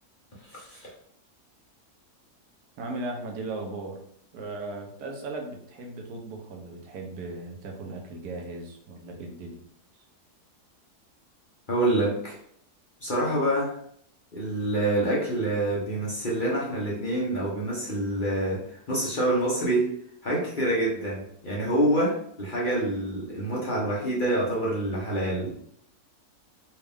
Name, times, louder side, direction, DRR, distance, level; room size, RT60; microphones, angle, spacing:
voice 1, 0.4-0.9 11.7-12.4 13.0-13.8 14.3-19.9 20.2-25.5, right 1 dB, 40° left, -5 dB, 0.8 m, -26 dB
voice 2, 2.8-4.0 4.3-9.6, right 2 dB, 75° right, 1 dB, 1.3 m, -37 dB
4.3 x 2.4 x 3.5 m, 0.67 s
omnidirectional pair, 1.7 m